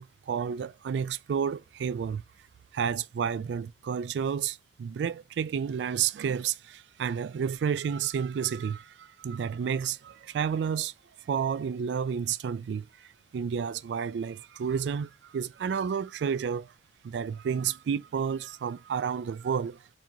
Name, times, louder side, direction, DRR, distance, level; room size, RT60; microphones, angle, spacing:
voice 1, 0.0-2.2 2.7-10.9 11.3-16.7 17.0-19.8, right 7 dB, 70° right, 0.3 m, -31 dB
3.7 x 2.9 x 3.5 m
head